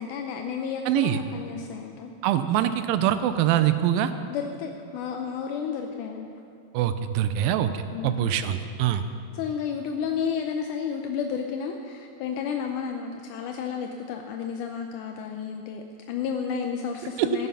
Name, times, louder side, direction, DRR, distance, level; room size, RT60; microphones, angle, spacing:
voice 1, 0.0-2.1 4.3-6.3 7.9-8.3 9.3-17.5, left 7 dB, 80° left, 4 dB, 1.8 m, -32 dB
voice 2, 0.9-1.2 2.2-4.1 6.7-9.0 17.2-17.3, right 11 dB, 80° right, 11 dB, 2.3 m, -24 dB
15.5 x 11.5 x 5.7 m, 2.4 s
omnidirectional pair, 4.3 m